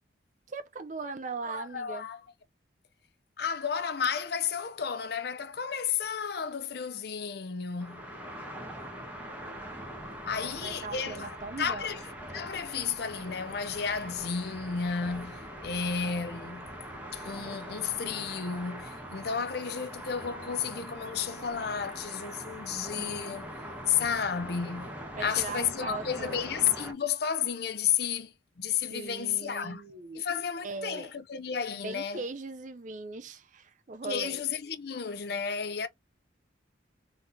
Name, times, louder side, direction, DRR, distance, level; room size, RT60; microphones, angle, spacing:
voice 1, 0.5-2.1 10.3-11.9 25.2-26.5 28.9-30.2 30.6-31.1 31.8-34.4, right 4 dB, 40° right, 0.5 m, -39 dB
voice 2, 1.4-2.2 3.4-8.1 10.2-12.0 12.3-16.7 17.1-23.5 23.9-29.8 30.1-32.2 34.0-35.9, left 7 dB, 55° left, 0.6 m, -32 dB
sound 1, 7.8-26.9, equal, 10° right, 1.2 m, -42 dB
4.0 x 3.7 x 2.7 m
head